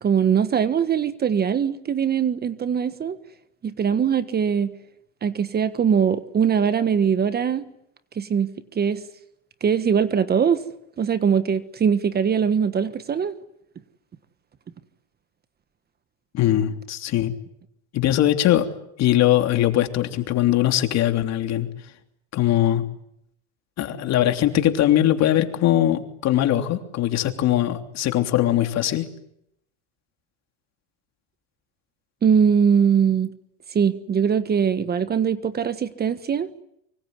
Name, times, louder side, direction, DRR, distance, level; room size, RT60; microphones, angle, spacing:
voice 1, 0.0-3.2 3.6-4.7 5.2-7.7 8.2-8.5 8.7-9.0 9.6-10.6 11.0-13.3 32.2-33.3 33.7-36.5, right 7 dB, 25° right, 12 dB, 1.5 m, -21 dB
voice 2, 16.3-17.3 17.9-18.7 19.0-21.7 22.3-22.9 23.8-29.1, left 12 dB, 45° left, 6 dB, 3.3 m, -21 dB
25.0 x 24.0 x 9.6 m, 0.77 s
supercardioid pair, 120°, 36 cm